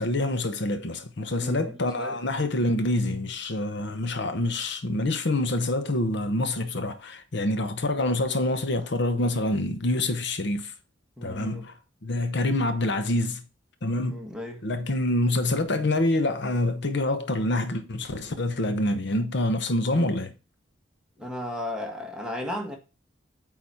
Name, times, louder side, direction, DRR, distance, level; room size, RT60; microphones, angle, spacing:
voice 1, 0.0-10.7 11.2-11.7 12.0-13.4 13.8-14.2 14.6-20.3, left 1 dB, 65° left, 0.9 m, -26 dB
voice 2, 1.4-2.2 11.2-11.6 14.1-14.6 21.2-22.8, left 1 dB, 5° right, 1.7 m, -35 dB
8.4 x 4.1 x 4.4 m
head